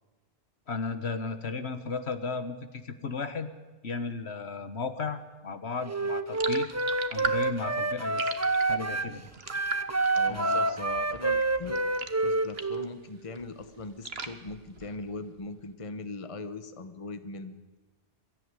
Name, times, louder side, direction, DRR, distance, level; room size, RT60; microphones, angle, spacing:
voice 1, 0.7-3.5 3.8-6.7 7.1-8.3 8.7-9.2 9.5-9.6 10.3-10.8, left 4 dB, 65° left, 10 dB, 1.6 m, -35 dB
Wind instrument woodwind instrument, 5.8-9.1 9.5-12.9, right 2 dB, 15° right, 0.7 m, -28 dB
sound 1, 6.3-12.9 13.2-15.3, right 4 dB, 60° right, 1.5 m, -39 dB
voice 2, 10.1-11.8 12.2-17.6, left 3 dB, 30° left, 10 dB, 1.1 m, -40 dB
22.5 x 14.0 x 9.7 m, 1.2 s
omnidirectional pair, 1.2 m